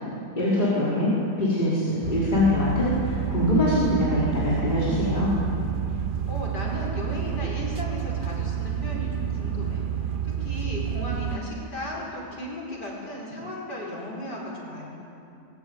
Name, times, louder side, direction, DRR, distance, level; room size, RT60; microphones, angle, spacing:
voice 1, 0.4-1.1 1.4-5.3, left 1 dB, 25° left, -9 dB, 5.1 m, -23 dB
sound 1, 2.0-11.4, right 9 dB, 40° right, 0.9 m, -29 dB
voice 2, 6.3-9.9 10.2-14.9, left 1 dB, 90° left, -3 dB, 5.7 m, -35 dB
23.0 x 21.0 x 9.1 m, 2.6 s
omnidirectional pair, 1.7 m